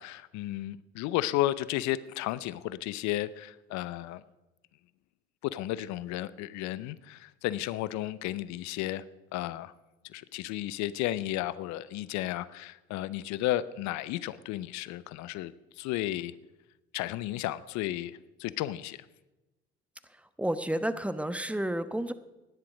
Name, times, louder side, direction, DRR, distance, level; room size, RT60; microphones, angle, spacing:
voice 1, 0.0-4.2 5.4-9.0 9.3-9.7 10.1-16.3 16.9-19.0, left 15 dB, 65° left, 18 dB, 0.7 m, -33 dB
voice 2, 20.4-22.1, right 1 dB, 5° right, 12 dB, 1.1 m, -30 dB
17.0 x 10.5 x 5.1 m, 1.0 s
hypercardioid pair, 55°, 31 cm